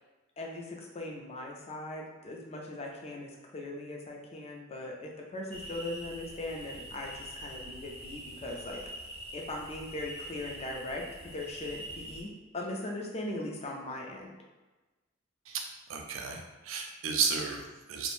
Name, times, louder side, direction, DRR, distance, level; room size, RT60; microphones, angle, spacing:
voice 1, 0.4-8.8 9.3-11.0 11.3-14.3, left 1 dB, 30° left, 0 dB, 0.4 m, -39 dB
sound 1, 5.5-12.2, equal, 30° right, 0.5 m, -45 dB
voice 2, 15.9-18.1, right 5 dB, 85° right, 2 dB, 0.4 m, -33 dB
2.5 x 2.1 x 3.1 m, 1.2 s
head